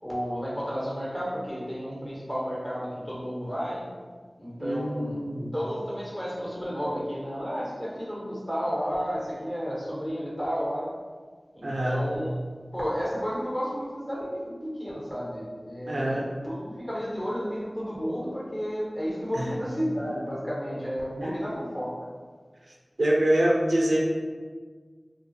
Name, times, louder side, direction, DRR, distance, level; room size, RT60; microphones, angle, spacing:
voice 1, 0.0-3.9 4.4-10.9 11.5-12.4 12.7-21.9, equal, 20° left, -6 dB, 1.2 m, -32 dB
voice 2, 4.6-5.5 11.6-12.1 15.9-16.3 19.3-19.5 21.2-21.3 23.0-24.0, right 1 dB, 75° right, -2 dB, 0.5 m, -25 dB
2.5 x 2.3 x 4.0 m, 1.5 s
wide cardioid pair, 40°, 0 cm